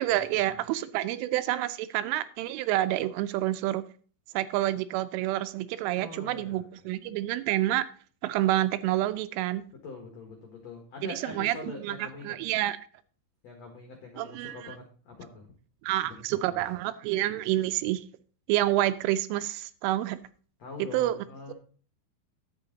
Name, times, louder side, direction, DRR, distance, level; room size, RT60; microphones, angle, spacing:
voice 1, 0.0-3.8 4.3-7.9 8.2-9.6 11.0-12.8 14.2-14.8 15.8-18.0 18.5-20.2 20.8-21.5, right 14 dB, 85° right, 3.0 m, -28 dB
voice 2, 6.0-6.7 9.8-12.3 13.4-15.5 16.3-16.6 20.6-21.5, left 3 dB, 75° left, 1.5 m, -43 dB
11.0 x 8.0 x 3.9 m
omnidirectional pair, 5.8 m